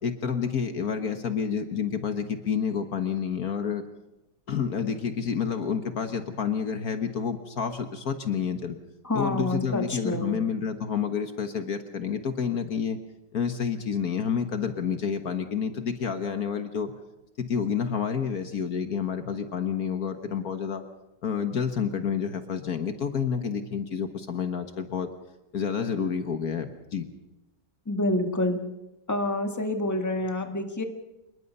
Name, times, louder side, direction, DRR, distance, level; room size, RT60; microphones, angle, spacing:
voice 1, 0.0-3.8 4.5-8.7 9.1-13.0 13.3-16.9 17.4-20.8 21.2-25.1 25.5-27.0, left 7 dB, 60° left, 8 dB, 1.7 m, -29 dB
voice 2, 9.0-10.4 27.9-28.6 29.1-30.8, left 1 dB, 10° left, 5 dB, 1.7 m, -27 dB
26.0 x 21.5 x 5.5 m, 0.98 s
omnidirectional pair, 1.9 m